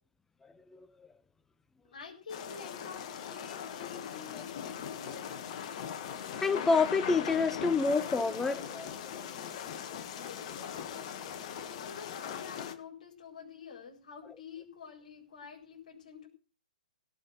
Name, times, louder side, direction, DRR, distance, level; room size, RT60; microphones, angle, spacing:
voice 1, 1.9-5.8 10.1-16.3, left 6 dB, 60° left, 4.6 m, -49 dB
sound 1, 2.3-12.7, left 8 dB, 40° left, 1.8 m, -40 dB
voice 2, 6.4-9.0, left 4 dB, 10° left, 0.6 m, -28 dB
16.5 x 5.6 x 7.9 m
figure-of-eight pair, 125°, 5 cm